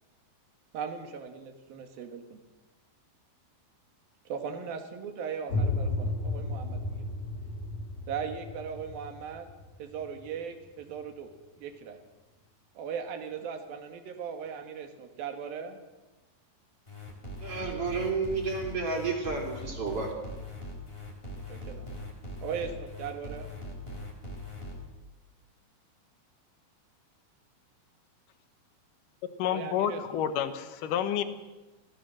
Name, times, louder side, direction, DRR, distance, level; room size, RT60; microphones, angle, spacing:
voice 1, 0.7-2.4 4.3-7.1 8.1-9.5 9.8-11.3 11.6-12.0 12.8-15.8 21.5-21.9 22.4-23.5 29.4-30.2, right 7 dB, 70° right, 5 dB, 3.5 m, -38 dB
sound 1, 5.5-11.1, left 2 dB, 45° left, 5.4 m, -34 dB
sound 2, 16.9-24.7, left 1 dB, 15° left, 4.4 m, -41 dB
voice 2, 17.4-20.1, right 4 dB, 35° right, 1 dB, 4.3 m, -31 dB
voice 3, 29.4-31.2, left 9 dB, 65° left, 10 dB, 2.5 m, -29 dB
25.0 x 17.5 x 6.5 m, 1.1 s
omnidirectional pair, 4.5 m